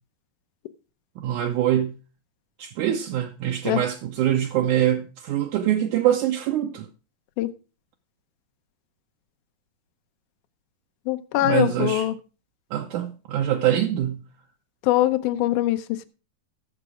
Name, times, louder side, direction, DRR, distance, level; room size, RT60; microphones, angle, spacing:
voice 1, 1.2-1.9 2.6-6.9 11.4-12.1 12.7-14.3, right 11 dB, 75° right, 2.2 m, -24 dB
voice 2, 11.1-12.1 14.8-16.1, left 14 dB, 75° left, 2.2 m, -22 dB
13.5 x 7.3 x 4.8 m
omnidirectional pair, 3.8 m